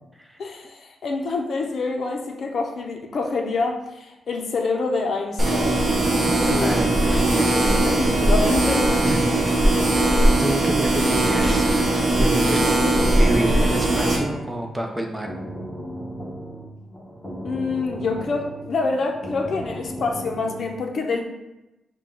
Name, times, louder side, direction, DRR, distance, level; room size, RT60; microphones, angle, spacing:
voice 1, 0.4-5.9 6.5-6.7 7.8-8.9 17.4-21.2, left 3 dB, 50° left, 2 dB, 0.6 m, -26 dB
sound 1, 5.4-14.2, right 1 dB, 30° right, 1.2 m, -19 dB
voice 2, 6.2-7.9 9.0-9.3 10.4-12.7 13.1-15.3, right 1 dB, 10° right, 2 dB, 0.5 m, -29 dB
sound 2, 13.0-20.7, equal, 5° left, 1.0 m, -36 dB
6.4 x 2.2 x 3.7 m, 0.96 s
wide cardioid pair, 160°, 0 cm